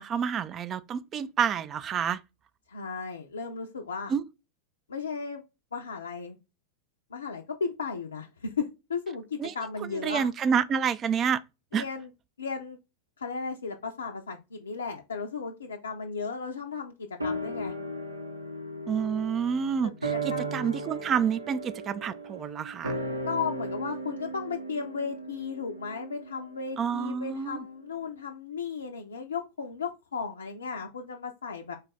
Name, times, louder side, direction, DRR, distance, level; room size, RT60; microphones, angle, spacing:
voice 1, 0.0-2.2 4.1-4.2 9.4-9.5 9.9-11.4 11.7-11.8 18.9-23.0 26.8-27.6, right 7 dB, 25° right, 0.3 m, -28 dB
voice 2, 2.7-4.1 4.9-5.4 5.7-6.4 7.1-10.3 11.7-12.1 12.4-12.8 13.2-17.7 19.8-20.7 23.3-31.8, left 5 dB, 70° left, 0.4 m, -35 dB
sound 1, 17.2-27.8 28.1-28.2, right 1 dB, 80° right, 0.7 m, -36 dB
3.9 x 2.4 x 3.7 m
figure-of-eight pair, 90°, 0 cm